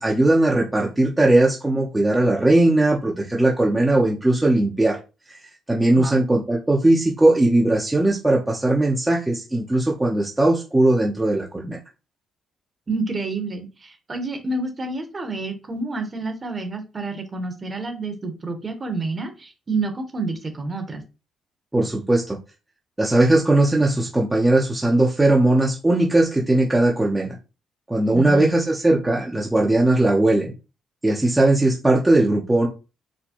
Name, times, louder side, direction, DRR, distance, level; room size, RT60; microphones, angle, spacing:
voice 1, 0.0-5.0 5.3-5.4 5.7-11.8 21.7-22.4 23.0-27.4 27.9-30.5 31.0-32.7, right 2 dB, 15° right, -3 dB, 0.8 m, -19 dB
voice 2, 12.9-21.0 28.1-28.5, right 3 dB, 30° right, 5 dB, 1.1 m, -29 dB
4.2 x 2.2 x 2.9 m, 0.30 s
cardioid pair, 90°, 0 cm